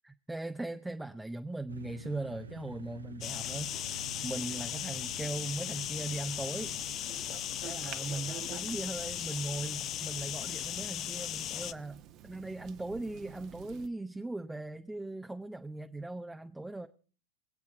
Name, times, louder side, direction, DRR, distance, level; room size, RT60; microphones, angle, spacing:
voice 1, 0.0-3.7 4.2-6.8 7.6-16.9, right 2 dB, 5° right, 6 dB, 0.8 m, -39 dB
sound 1, 1.7-10.9, right 5 dB, 75° right, 0.9 m, -50 dB
sound 2, 3.2-11.7, left 12 dB, 35° left, 0.6 m, -37 dB
sound 3, 6.5-13.9, right 12 dB, 35° right, 1.1 m, -50 dB
23.5 x 8.6 x 5.1 m, 0.39 s
figure-of-eight pair, 90°, 0 cm